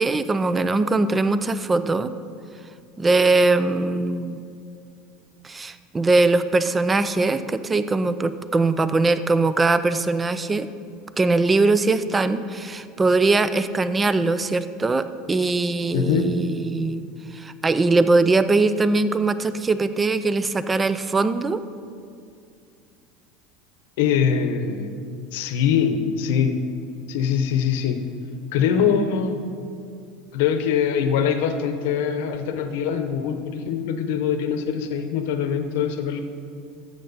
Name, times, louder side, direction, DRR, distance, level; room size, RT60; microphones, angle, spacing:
voice 1, 0.0-2.1 3.0-4.5 5.4-10.7 11.2-17.0 17.3-21.6, right 3 dB, 15° right, 13 dB, 0.4 m, -21 dB
voice 2, 15.9-16.3 24.0-24.9 25.3-26.6 27.1-28.0 28.5-29.4 30.3-36.2, left 7 dB, 80° left, 8 dB, 0.8 m, -23 dB
12.5 x 7.4 x 4.0 m, 2.4 s
supercardioid pair, 135°, 0 cm